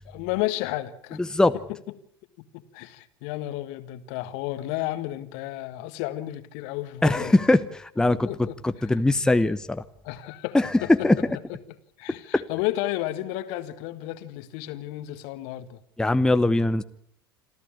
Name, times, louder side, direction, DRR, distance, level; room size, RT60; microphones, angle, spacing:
voice 1, 0.0-1.2 2.4-7.4 8.2-8.9 10.0-11.2 11.5-11.6 12.0-15.8, left 15 dB, 55° left, 12 dB, 1.6 m, -32 dB
voice 2, 7.0-9.8 10.5-11.2 12.3-12.4 16.0-16.8, left 2 dB, 5° left, 11 dB, 0.9 m, -21 dB
27.0 x 14.0 x 8.6 m, 0.69 s
figure-of-eight pair, 75°, 12 cm